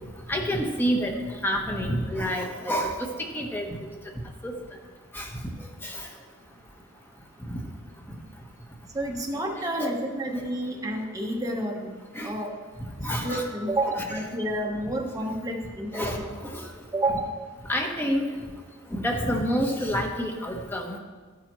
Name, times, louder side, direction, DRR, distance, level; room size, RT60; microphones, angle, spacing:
voice 1, 0.3-1.1 1.4-3.1 3.3-3.7 4.4-4.5 5.1-5.5 5.8-6.0 7.5-7.6 9.8-9.9 12.1-12.3 13.0-13.5 13.9-14.0 15.9-16.6 17.7-18.3 18.9-21.0, equal, 10° left, 1 dB, 1.1 m, -28 dB
voice 2, 8.9-11.9 12.2-12.6 13.2-16.2 16.9-17.3, right 1 dB, 15° right, 0 dB, 1.2 m, -29 dB
12.5 x 8.9 x 3.1 m, 1.4 s
head